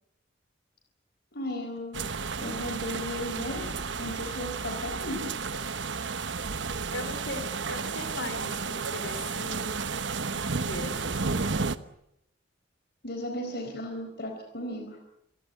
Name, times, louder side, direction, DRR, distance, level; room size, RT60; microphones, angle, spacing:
voice 1, 1.3-2.1 2.4-5.2 13.0-15.0, left 1 dB, 60° left, 4 dB, 4.3 m, -35 dB
sound 1, 1.9-11.8, right 4 dB, 75° right, 1.1 m, -32 dB
voice 2, 6.9-9.9 10.3-10.9, left 2 dB, 85° left, 7 dB, 4.6 m, -39 dB
25.5 x 16.5 x 9.7 m, 0.79 s
head